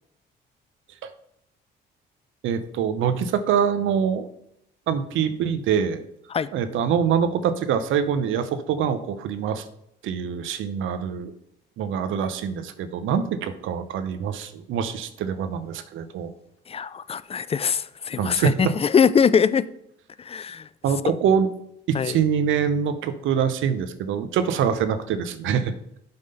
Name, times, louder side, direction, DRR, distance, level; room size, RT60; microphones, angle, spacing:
voice 1, 2.4-4.3 4.9-6.0 6.5-9.6 10.0-11.3 11.8-16.3 18.2-18.7 20.8-21.5 21.9-25.7, right 7 dB, 80° right, 12 dB, 0.7 m, -24 dB
voice 2, 16.7-19.7 20.2-20.7 21.9-22.2, left 7 dB, 30° left, 16 dB, 0.3 m, -22 dB
7.8 x 3.6 x 5.4 m, 0.76 s
cardioid pair, 90°, 20 cm